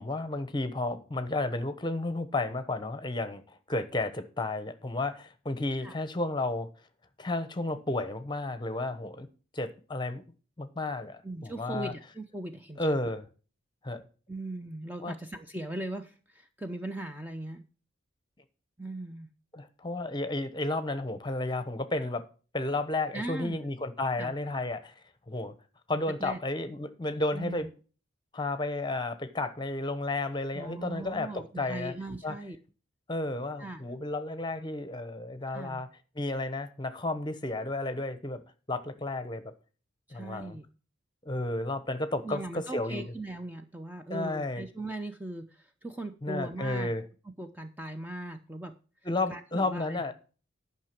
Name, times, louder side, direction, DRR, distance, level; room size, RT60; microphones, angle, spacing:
voice 1, 0.0-6.7 7.2-9.3 9.5-10.2 10.6-11.9 12.8-13.2 13.8-14.0 15.0-15.2 19.5-22.2 22.5-24.9 25.3-25.5 25.9-27.7 28.3-31.9 32.2-32.4 33.1-35.9 36.2-38.4 38.7-39.4 40.1-40.6 41.2-43.0 44.1-44.6 46.2-47.0 49.0-50.1, left 2 dB, 25° left, 0.9 m, -32 dB
voice 2, 11.2-13.0 14.3-17.6 18.8-19.3 23.1-23.6 24.2-24.3 26.2-26.4 27.3-27.7 30.5-32.6 33.6-33.8 35.5-35.8 40.1-40.7 42.2-46.9 47.4-48.7 49.3-50.0, right 1 dB, 10° right, 0.5 m, -39 dB
10.5 x 5.8 x 5.9 m
head